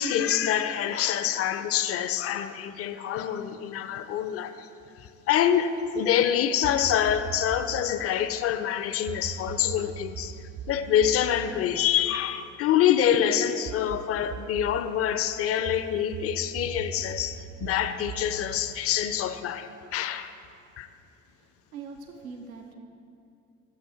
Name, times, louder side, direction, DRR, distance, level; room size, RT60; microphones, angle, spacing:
voice 1, 0.0-4.7 5.0-20.3 20.8-20.9, left 10 dB, 35° left, 11 dB, 0.4 m, -26 dB
sound 1, 6.6-7.9 9.1-12.8 13.7-14.9 15.7-19.6, right 7 dB, 35° right, 0.4 m, -40 dB
voice 2, 21.3-22.7, right 5 dB, 90° right, 3 dB, 0.5 m, -43 dB
6.7 x 6.6 x 4.3 m, 2.5 s
figure-of-eight pair, 55°, 41 cm